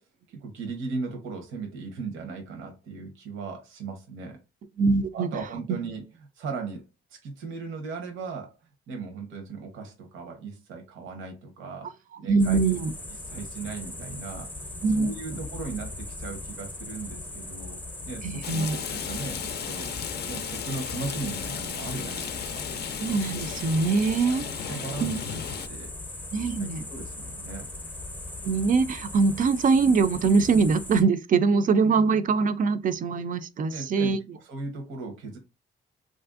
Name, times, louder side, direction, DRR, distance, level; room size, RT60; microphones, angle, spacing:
voice 1, 0.3-4.4 5.1-6.9 7.1-8.6 8.9-12.6 13.1-17.8 18.1-19.9 20.2-22.7 24.4-25.3 25.7-27.7 33.7-35.4, right 4 dB, 80° right, 0.9 m, -38 dB
voice 2, 4.8-5.3 12.3-12.9 14.8-15.1 18.2-18.8 23.0-24.4 25.0-25.4 26.3-26.9 28.4-34.2, right 4 dB, 45° right, 0.4 m, -23 dB
sound 1, 12.4-31.0, left 2 dB, 10° left, 0.6 m, -39 dB
Rain, 18.4-25.7, left 8 dB, 55° left, 0.4 m, -35 dB
3.1 x 2.6 x 2.4 m
cardioid pair, 90°, 20 cm